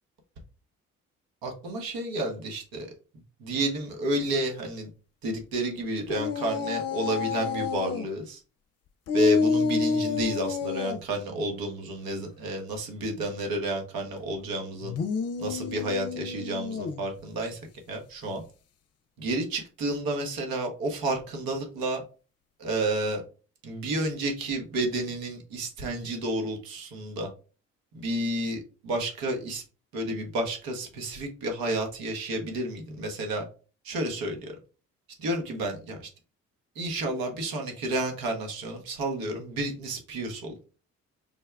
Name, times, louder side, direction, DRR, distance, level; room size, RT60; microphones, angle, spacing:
voice 1, 1.4-2.9 3.4-4.9 5.2-8.4 9.1-15.0 15.4-17.6 17.9-18.4 19.2-22.0 22.6-23.2 23.6-27.3 27.9-29.6 29.9-33.4 33.8-34.5 35.2-36.1 36.7-40.5, right 1 dB, 70° right, 3 dB, 1.2 m, -31 dB
sound 1, 6.1-8.0 9.1-11.0 14.8-17.1, left 5 dB, 45° left, 0.6 m, -29 dB
5.3 x 2.2 x 3.4 m, 0.36 s
hypercardioid pair, 45°, 36 cm